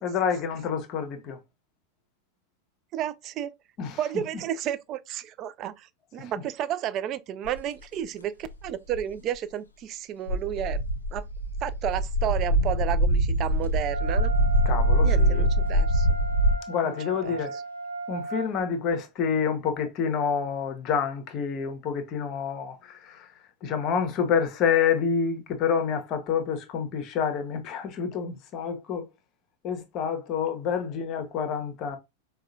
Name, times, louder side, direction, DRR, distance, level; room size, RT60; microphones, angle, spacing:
voice 1, 0.0-1.4 3.8-4.0 6.2-6.3 14.6-15.5 16.7-17.6 18.1-23.3 23.6-29.1 29.6-32.0, left 7 dB, 35° left, 0.8 m, -28 dB
voice 2, 2.9-3.5 4.0-5.9 6.1-10.8 11.1-11.3 11.6-14.3 15.0-16.1 16.9-17.0 17.2-17.4, right 10 dB, 35° right, 0.3 m, -32 dB
sound 1, 7.4-7.6 8.4-9.0 10.3-16.6, right 1 dB, 75° left, 0.5 m, -23 dB
Wind instrument woodwind instrument, 13.9-18.5, right 3 dB, 80° right, 0.8 m, -36 dB
4.7 x 2.2 x 2.5 m
figure-of-eight pair, 90°, 0 cm